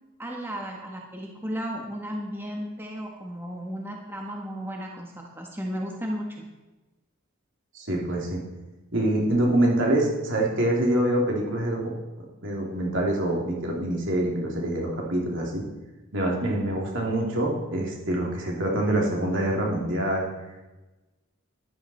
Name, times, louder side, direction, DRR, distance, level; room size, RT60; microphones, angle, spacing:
voice 1, 0.2-6.5, equal, 10° right, 0 dB, 1.3 m, -34 dB
voice 2, 7.7-8.4 8.9-11.8 12.4-15.6 16.1-20.2, right 1 dB, 60° right, -1 dB, 3.1 m, -25 dB
13.0 x 11.5 x 4.4 m, 1.1 s
head